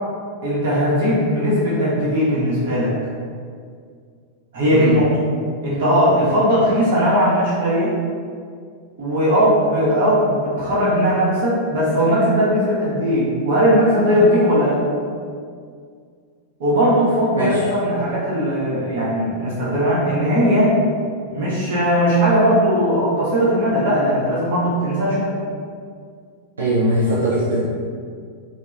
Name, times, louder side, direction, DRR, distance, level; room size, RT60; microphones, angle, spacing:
voice 1, 0.4-2.9 4.5-5.1 5.6-7.9 9.0-14.8 16.6-20.8 21.3-25.3, equal, 55° right, -7 dB, 0.8 m, -18 dB
voice 2, 17.4-17.7 26.6-27.6, right 1 dB, 75° right, -7 dB, 0.4 m, -20 dB
2.8 x 2.1 x 2.3 m, 2.1 s
figure-of-eight pair, 90°, 0 cm